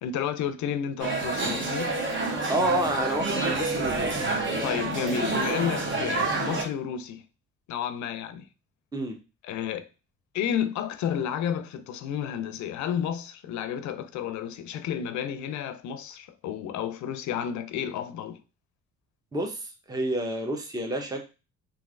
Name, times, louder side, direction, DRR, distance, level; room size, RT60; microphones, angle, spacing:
voice 1, 0.0-2.0 4.6-7.2 7.7-8.4 9.4-9.9 10.3-18.4, left 8 dB, 70° left, 0.5 m, -31 dB
sound 1, 1.0-6.6, right 3 dB, 40° right, 0.9 m, -28 dB
voice 2, 2.5-4.7 8.9-9.2 19.3-21.3, right 1 dB, 10° right, 0.8 m, -29 dB
3.1 x 2.6 x 2.5 m
cardioid pair, 80°, 30 cm